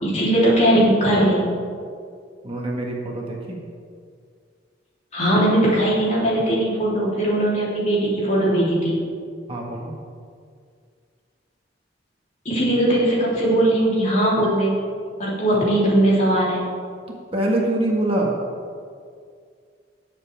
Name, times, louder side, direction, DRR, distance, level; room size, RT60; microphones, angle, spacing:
voice 1, 0.0-1.5 5.1-9.0 12.5-14.7 15.2-16.6, right 1 dB, 40° left, -6 dB, 3.3 m, -19 dB
voice 2, 2.4-3.4 9.5-9.9 15.5-15.6 17.3-18.3, right 1 dB, 30° right, -2 dB, 1.6 m, -24 dB
19.0 x 7.4 x 3.5 m, 2.1 s
head